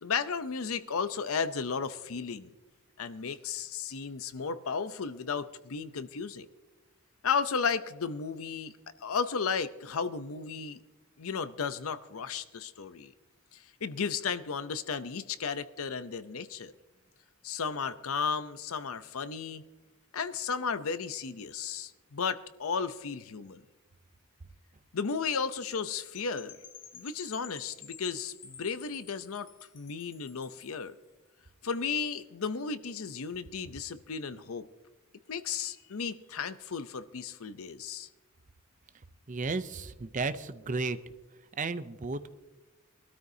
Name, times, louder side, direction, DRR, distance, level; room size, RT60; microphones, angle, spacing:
voice 1, 0.0-2.5 3.0-6.5 7.2-8.7 9.0-10.8 11.2-13.1 13.5-16.7 17.4-19.6 20.1-23.6 24.9-26.5 26.9-29.5 29.7-31.0 31.6-34.7 35.3-38.1, left 5 dB, 80° left, 13 dB, 0.6 m, -34 dB
Percussion / Wind chime, 26.1-30.8, left 9 dB, 40° left, 0.8 m, -50 dB
voice 2, 39.3-41.0 41.5-42.3, right 3 dB, 35° right, 12 dB, 0.6 m, -33 dB
22.5 x 13.0 x 2.8 m, 1.1 s
head